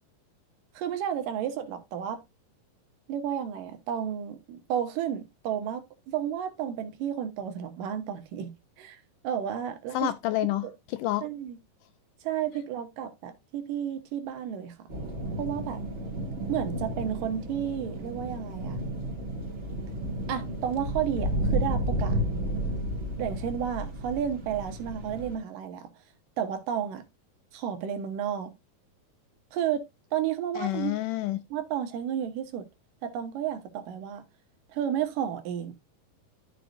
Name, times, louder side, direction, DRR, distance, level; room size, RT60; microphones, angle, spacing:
voice 1, 0.7-2.2 3.1-8.5 8.8-10.1 11.2-11.6 12.2-14.7 15.4-15.8 16.5-18.8 20.3-22.2 23.2-25.8 26.4-27.0 27.5-28.5 29.5-29.8 30.1-31.0 31.5-32.7 33.0-34.2 34.7-35.7, right 9 dB, 75° right, 2.6 m, -32 dB
voice 2, 9.9-11.3 30.6-31.4, left 15 dB, 80° left, 2.0 m, -29 dB
sound 1, 14.9-25.4, equal, 20° right, 2.7 m, -32 dB
12.5 x 5.1 x 2.6 m
omnidirectional pair, 4.1 m